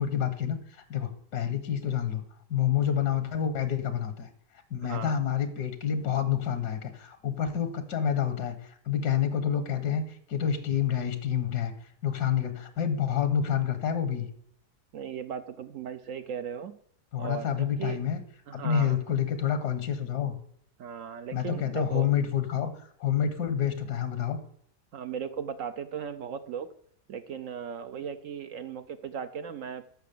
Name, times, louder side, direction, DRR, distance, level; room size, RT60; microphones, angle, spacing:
voice 1, 0.0-2.2 2.5-4.3 4.7-11.7 12.0-14.3 17.1-18.2 18.5-20.3 21.3-22.7 23.0-24.4, left 8 dB, 75° left, 10 dB, 1.5 m, -28 dB
voice 2, 4.8-5.2 14.9-16.8 17.2-18.0 18.5-19.0 20.8-22.1 24.9-26.7 27.1-29.9, right 7 dB, 65° right, 11 dB, 0.8 m, -37 dB
13.5 x 6.0 x 6.7 m, 0.67 s
omnidirectional pair, 1.7 m